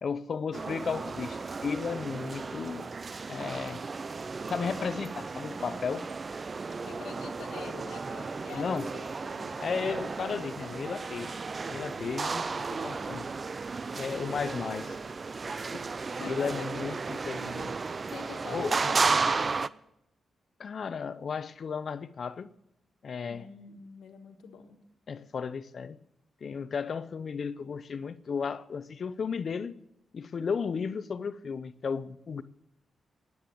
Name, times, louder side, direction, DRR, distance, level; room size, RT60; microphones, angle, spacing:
voice 1, 0.0-2.9 3.3-3.8 4.5-6.1 8.5-8.9 9.6-11.4 11.7-13.3 13.9-15.0 15.6-15.8 16.3-17.8 18.5-18.7 20.6-22.5 23.0-23.5 25.1-26.0 26.4-29.8 30.1-32.4, left 6 dB, 55° left, 0.6 m, -34 dB
sound 1, 0.5-19.7, right 4 dB, 40° right, 0.4 m, -34 dB
voice 2, 6.7-9.7 16.2-16.7 18.1-19.7 23.3-24.8, left 6 dB, 90° left, 1.5 m, -45 dB
sound 2, 10.3-19.1, right 4 dB, 90° right, 1.8 m, -59 dB
10.0 x 9.5 x 8.4 m
cardioid pair, 80°, 0 cm